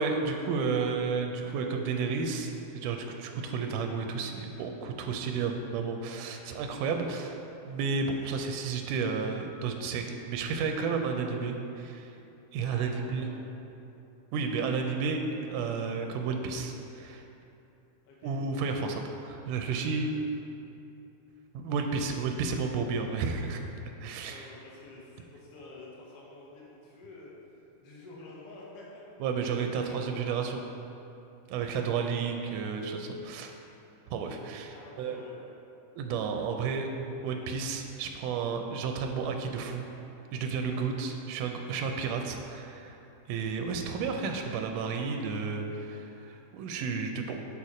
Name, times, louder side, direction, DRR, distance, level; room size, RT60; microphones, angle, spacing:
voice 1, 0.0-7.4 7.6-12.1 12.5-13.3 14.3-15.2 15.5-17.2 18.2-20.1 21.5-23.6 24.0-24.4 29.2-30.6 31.5-33.5 34.1-35.2 36.0-36.9 37.2-39.9 40.3-43.0 43.3-47.4, right 5 dB, 80° right, 4 dB, 2.0 m, -32 dB
voice 2, 12.6-13.6 18.0-18.3 24.2-27.3 27.8-29.0 29.6-30.2 34.7-35.3, left 2 dB, 60° left, -4 dB, 1.7 m, -49 dB
6.3 x 4.3 x 4.8 m, 2.8 s
omnidirectional pair, 3.8 m